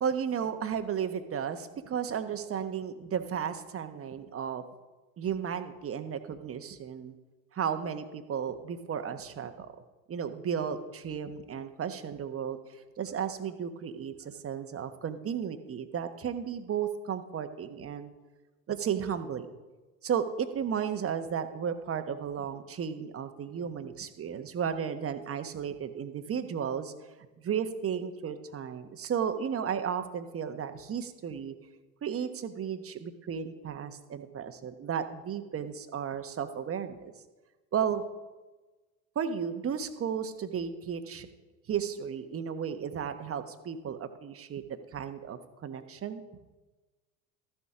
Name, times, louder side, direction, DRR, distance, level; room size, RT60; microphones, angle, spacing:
voice 1, 0.0-4.6 5.2-7.1 7.5-9.7 10.1-12.6 13.0-18.1 18.7-19.5 20.0-26.9 27.4-31.5 32.0-37.1 37.7-38.0 39.1-41.3 41.7-44.6 44.9-46.2, right 8 dB, 35° right, 9 dB, 1.2 m, -34 dB
13.5 x 7.1 x 5.0 m, 1.2 s
hypercardioid pair, 70°, 41 cm